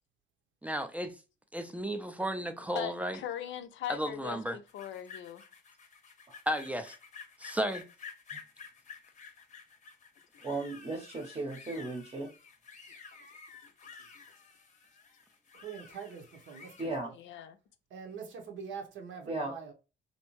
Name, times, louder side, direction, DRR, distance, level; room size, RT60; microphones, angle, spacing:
voice 1, 0.6-1.1 1.5-3.2 3.9-4.6 6.5-6.9 7.4-7.9, equal, 5° right, 0.3 m, -33 dB
voice 2, 2.7-5.4 10.3-10.5 13.6-13.7 14.1-14.2 17.1-17.6, left 10 dB, 75° left, 0.5 m, -40 dB
sound 1, 4.7-16.9, left 5 dB, 40° left, 0.6 m, -51 dB
voice 3, 10.4-12.3 16.8-17.1 19.3-19.5, right 2 dB, 30° right, 0.7 m, -36 dB
voice 4, 15.6-16.8 17.0-17.1 17.9-19.7, right 6 dB, 80° right, 0.8 m, -44 dB
2.7 x 2.2 x 2.9 m
cardioid pair, 105°, 20 cm